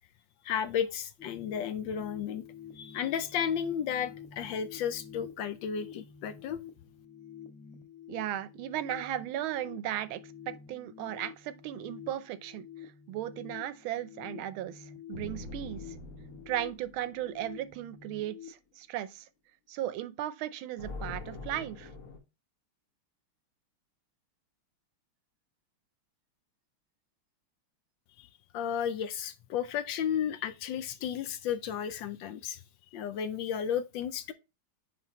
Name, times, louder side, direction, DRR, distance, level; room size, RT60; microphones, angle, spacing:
voice 1, 0.4-2.4 2.7-6.6 28.2-28.3 28.5-32.6 32.9-34.3, left 8 dB, 75° left, 1.2 m, -33 dB
sound 1, 1.2-18.5, left 8 dB, ahead, 0.9 m, -49 dB
voice 2, 8.1-10.2 10.5-12.7 13.1-15.8 16.5-19.2 19.7-21.9, right 12 dB, 80° right, 1.4 m, -36 dB
sound 2, 15.1-17.8 20.8-22.2, left 2 dB, 45° left, 1.4 m, -44 dB
9.8 x 3.6 x 2.9 m
omnidirectional pair, 2.3 m